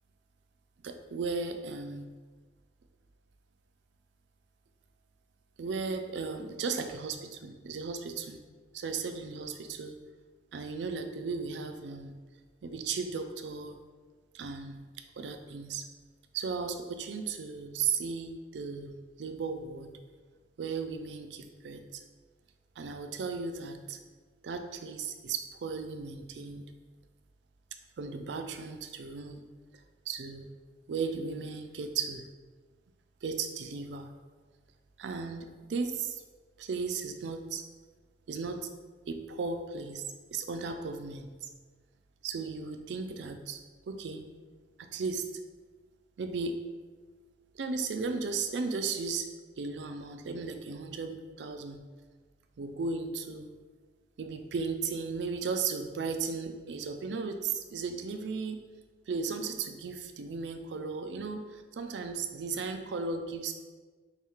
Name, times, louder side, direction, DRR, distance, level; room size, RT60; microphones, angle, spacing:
voice 1, 0.8-2.1 5.6-8.4 8.7-10.0 10.5-12.2 12.6-13.8 14.3-14.8 15.2-15.8 16.3-19.9 20.6-22.0 22.8-24.0 24.4-26.7 28.0-29.4 30.1-30.5 30.9-32.2 33.2-34.1 35.0-36.2 36.6-37.6 38.3-38.7 39.1-40.0 40.3-41.3 42.2-43.6 43.9-44.2 44.8-45.3 46.2-46.6 47.5-49.3 49.6-51.8 52.6-53.5 54.2-58.7 59.1-63.5, right 4 dB, 85° right, 6 dB, 0.4 m, -35 dB
3.5 x 2.4 x 4.3 m, 1.4 s
head